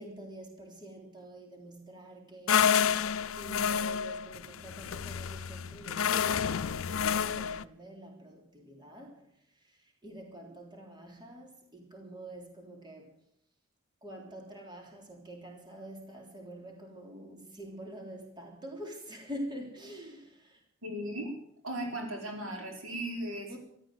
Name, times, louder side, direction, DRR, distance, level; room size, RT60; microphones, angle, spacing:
voice 1, 0.0-13.1 14.0-20.6 23.5-23.6, right 1 dB, 20° right, 3.5 m, -46 dB
sound 1, 2.5-7.6, left 8 dB, 90° left, 0.6 m, -29 dB
voice 2, 20.8-21.3 21.6-23.6, right 1 dB, 85° right, 4.7 m, -37 dB
14.0 x 13.0 x 7.9 m
head